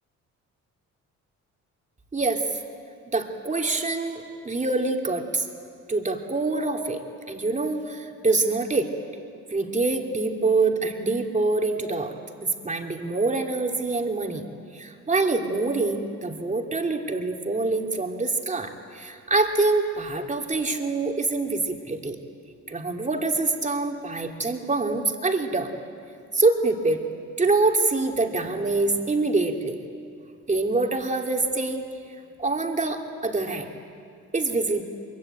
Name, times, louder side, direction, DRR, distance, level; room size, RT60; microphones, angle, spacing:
voice 1, 2.1-2.4 3.1-5.5 5.9-7.0 7.3-8.9 9.5-12.1 12.6-14.5 14.7-22.2 22.7-25.7 26.3-27.0 27.4-29.8 30.5-31.8 32.4-33.7 34.3-34.8, right 3 dB, 25° right, 2 dB, 2.8 m, -25 dB
23.0 x 23.0 x 9.0 m, 2.3 s
cardioid pair, 90°, 30 cm